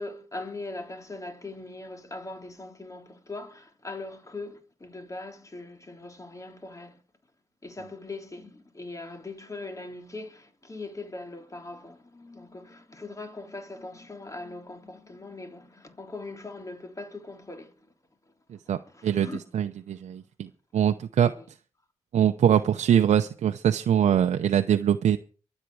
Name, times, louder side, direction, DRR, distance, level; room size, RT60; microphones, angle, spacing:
voice 1, 0.0-7.0 7.6-17.7 18.5-19.4 20.7-21.5, left 2 dB, 25° left, 3.4 m, -41 dB
voice 2, 19.5-21.3 22.1-25.2, right 9 dB, 75° right, 0.7 m, -23 dB
23.0 x 8.2 x 4.8 m
cardioid pair, 60°, 12 cm